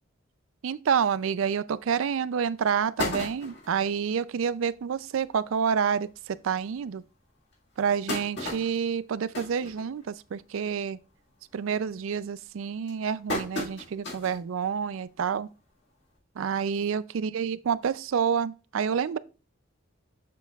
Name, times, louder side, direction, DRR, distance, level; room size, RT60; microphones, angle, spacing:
voice 1, 0.6-7.0 7.8-11.0 11.5-15.5 16.4-19.2, right 7 dB, 75° right, 0.4 m, -28 dB
sound 1, 1.9-2.0 2.4-2.5 2.7-3.8 4.4-4.5 4.7-4.8 5.2-5.3 6.1-6.2 6.7-6.8 7.5-10.4 10.7-11.1 11.4-11.8 12.4-14.4 14.9-15.0 16.2-16.3, left 2 dB, 55° left, 1.9 m, -35 dB
7.8 x 6.9 x 2.3 m
head